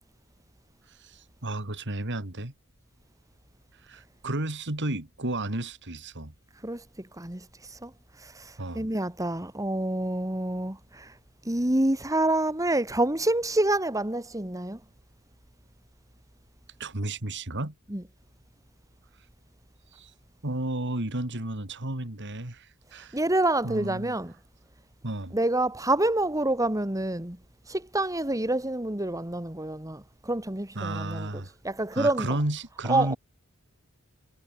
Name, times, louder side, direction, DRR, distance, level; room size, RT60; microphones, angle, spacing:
voice 1, 1.0-2.5 3.8-6.3 8.6-8.9 16.8-17.7 19.9-20.1 20.4-23.2 23.6-24.1 25.0-25.4 30.7-31.5 31.9-33.2, right 2 dB, 55° right, 2.9 m, -32 dB
voice 2, 7.2-11.2 11.4-14.8 17.9-18.0 23.1-24.3 25.3-27.4 27.7-31.3 31.6-32.4 32.9-33.2, right 1 dB, 15° right, 2.3 m, -27 dB
head